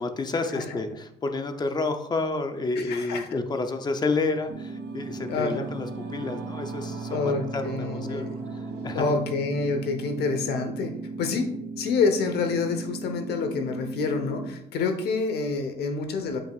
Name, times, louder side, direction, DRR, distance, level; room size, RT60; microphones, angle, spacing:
voice 1, 0.0-9.2, left 3 dB, 25° left, 7 dB, 0.7 m, -30 dB
voice 2, 2.7-3.4 5.3-5.7 7.1-8.4 8.9-11.5 11.8-16.4, left 4 dB, 75° left, 6 dB, 1.0 m, -27 dB
Singing / Musical instrument, 3.8-13.4, right 4 dB, 85° right, 1.9 m, -43 dB
sound 1, 4.5-14.5, right 3 dB, 40° right, 0.7 m, -37 dB
7.3 x 5.5 x 2.4 m, 0.76 s
cardioid pair, 110°, 17 cm